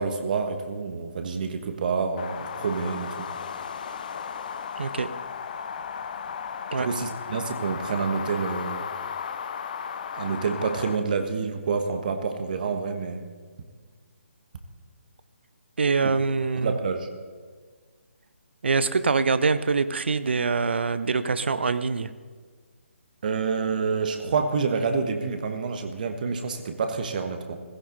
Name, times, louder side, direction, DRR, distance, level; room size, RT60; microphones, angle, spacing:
voice 1, 0.0-3.3 6.8-8.8 10.1-13.3 16.0-16.2 16.6-17.1 23.2-27.6, right 5 dB, 40° right, 6 dB, 1.5 m, -28 dB
sound 1, 2.2-11.0, left 7 dB, 40° left, 0.7 m, -35 dB
voice 2, 4.8-5.1 6.7-6.9 15.8-16.8 18.6-22.1, right 4 dB, 55° right, 14 dB, 0.8 m, -24 dB
16.5 x 15.5 x 4.1 m, 1.6 s
figure-of-eight pair, 140°, 7 cm